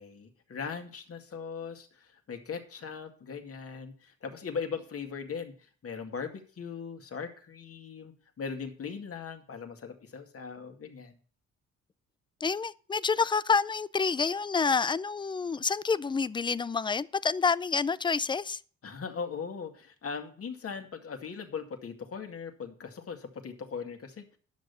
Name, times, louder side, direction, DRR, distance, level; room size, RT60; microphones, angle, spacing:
voice 1, 0.0-11.2 18.8-24.4, left 6 dB, 50° left, 2.1 m, -39 dB
voice 2, 12.4-18.6, left 5 dB, 15° left, 0.4 m, -28 dB
10.5 x 6.5 x 6.8 m
cardioid pair, 90°, 30 cm